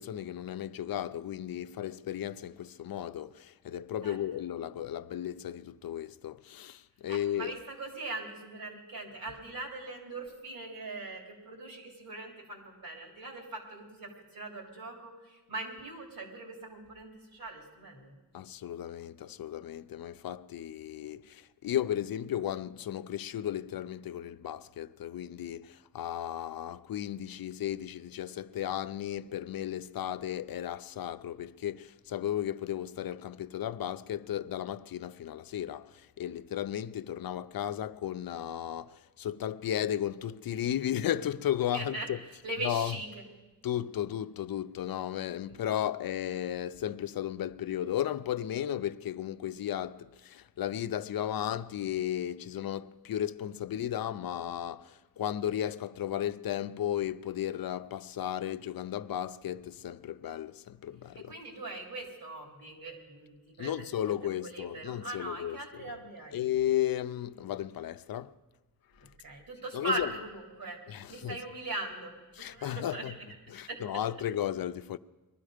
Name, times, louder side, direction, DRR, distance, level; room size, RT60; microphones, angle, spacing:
voice 1, 0.0-7.5 18.3-42.2 42.6-43.0 43.6-61.3 63.6-65.9 66.3-68.3 69.0-69.1 69.7-70.1 70.9-71.4 72.4-73.1 73.5-75.0, left 11 dB, 80° left, 0.5 m, -34 dB
voice 2, 7.1-18.1 41.7-42.1 42.4-43.2 45.5-45.6 61.3-63.8 64.4-66.4 69.2-70.8 71.1-73.1 73.7-73.8, right 2 dB, 80° right, 3.3 m, -40 dB
20.5 x 12.5 x 5.0 m
wide cardioid pair, 115°, 35 cm